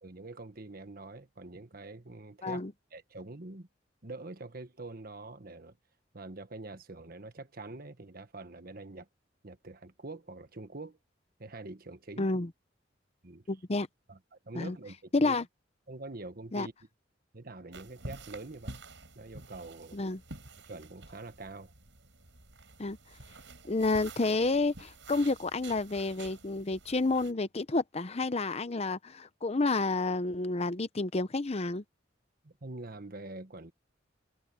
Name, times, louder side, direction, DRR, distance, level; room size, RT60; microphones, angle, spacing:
voice 1, 0.0-2.6 2.9-3.7 4.0-5.8 6.1-9.1 9.4-11.0 11.4-12.3 13.2-13.5 14.1-15.4 15.9-16.7 17.3-18.8 19.1-20.0 20.6-21.7 32.4-33.7, right 2 dB, 50° right, 1.4 m, -45 dB
voice 2, 12.2-12.5 13.5-13.9 14.5-14.8 15.1-15.4 16.5-16.7 19.9-20.2 22.8-23.0 23.7-31.8, left 3 dB, 35° left, 0.7 m, -30 dB
sound 1, 17.7-27.3, right 2 dB, 75° right, 6.5 m, -49 dB
head